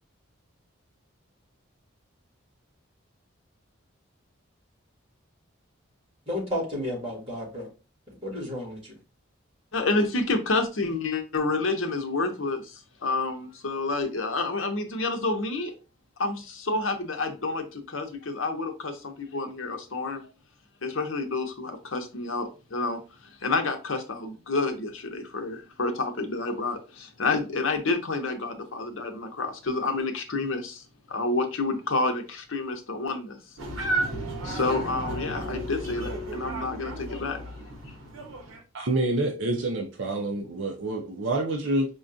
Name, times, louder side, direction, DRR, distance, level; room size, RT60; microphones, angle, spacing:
voice 1, 6.3-7.7 8.2-8.9, left 1 dB, 25° right, 1.7 m, -32 dB
voice 2, 9.7-15.7 16.2-20.2 20.8-33.4 33.8-34.0 34.4-37.4, left 3 dB, 70° left, 0.7 m, -29 dB
sound 1, 33.6-38.6, right 1 dB, 80° right, 1.1 m, -33 dB
voice 3, 38.7-41.9, right 2 dB, 60° right, 0.6 m, -27 dB
5.1 x 2.3 x 2.6 m
head